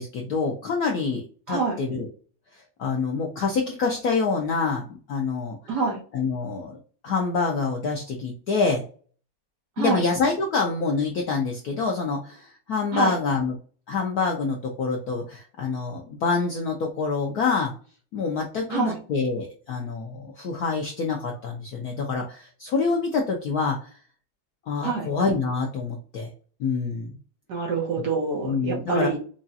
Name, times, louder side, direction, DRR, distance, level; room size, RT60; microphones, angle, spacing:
voice 1, 0.0-2.1 2.5-5.6 6.1-8.8 9.8-13.6 13.9-17.7 18.1-24.0 24.7-26.3 26.6-27.1 28.4-29.1, left 4 dB, 70° left, 1 dB, 0.9 m, -26 dB
voice 2, 5.7-6.0 9.8-10.0 12.9-13.2 18.7-19.0 24.8-25.1 27.5-29.2, right 4 dB, 60° right, 0 dB, 1.4 m, -26 dB
4.9 x 2.3 x 2.7 m, 0.41 s
omnidirectional pair, 2.3 m